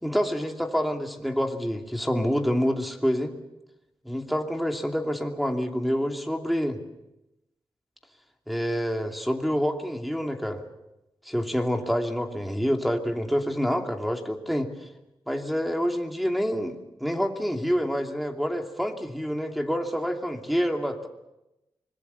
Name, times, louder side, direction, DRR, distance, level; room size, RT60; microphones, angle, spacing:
voice 1, 0.0-3.3 4.0-6.8 8.5-10.6 11.2-14.7 15.3-16.7 17.0-21.1, equal, ahead, 3 dB, 2.6 m, -27 dB
25.0 x 21.0 x 6.9 m, 0.94 s
wide cardioid pair, 85°, 9 cm